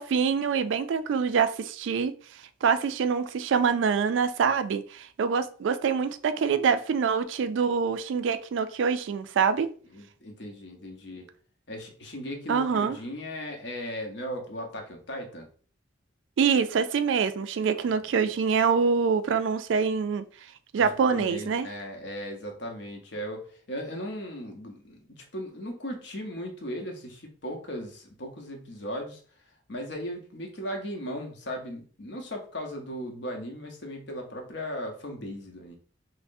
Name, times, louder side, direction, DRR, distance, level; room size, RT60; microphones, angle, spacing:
voice 1, 0.0-2.2 2.6-9.7 12.5-13.0 16.4-20.2 20.7-21.7, right 6 dB, 80° right, 0.3 m, -25 dB
voice 2, 9.9-11.3 11.7-15.5 17.7-17.9 20.8-29.2 29.7-35.7, equal, 65° left, 0.9 m, -37 dB
5.7 x 2.1 x 2.6 m
head